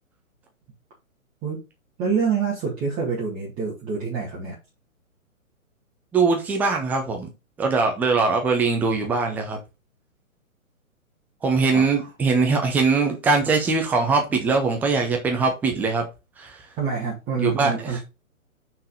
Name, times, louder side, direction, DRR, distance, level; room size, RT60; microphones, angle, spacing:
voice 1, 2.0-4.6 11.7-11.8 16.8-18.0, right 6 dB, 20° right, 2.2 m, -26 dB
voice 2, 6.1-7.3 7.6-9.6 11.4-16.1 16.4-16.6 17.4-18.0, right 4 dB, 5° right, 0.7 m, -22 dB
5.9 x 4.8 x 5.0 m
figure-of-eight pair, 125°, 42 cm